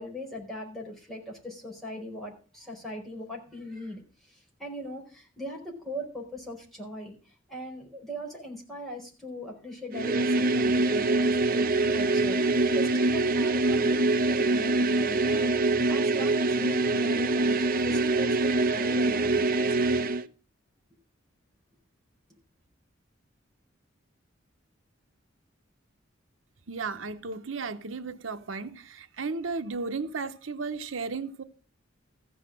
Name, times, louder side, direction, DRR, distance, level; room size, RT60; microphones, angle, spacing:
voice 1, 0.0-12.4 12.7-19.9, equal, ahead, 4.7 m, -40 dB
sound 1, 9.9-20.3, right 2 dB, 50° right, 0.8 m, -24 dB
voice 2, 26.7-31.4, right 4 dB, 90° right, 0.9 m, -34 dB
15.0 x 6.5 x 7.5 m
head